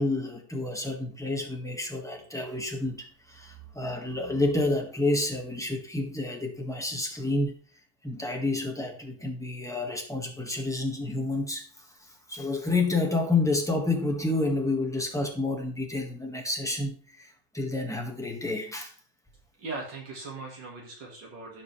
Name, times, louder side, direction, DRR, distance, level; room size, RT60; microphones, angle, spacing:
voice 1, 0.0-7.5 8.0-18.9, left 2 dB, ahead, 1 dB, 1.4 m, -29 dB
voice 2, 19.6-21.6, right 3 dB, 70° right, -1 dB, 2.6 m, -39 dB
16.0 x 5.5 x 3.3 m, 0.42 s
omnidirectional pair, 2.0 m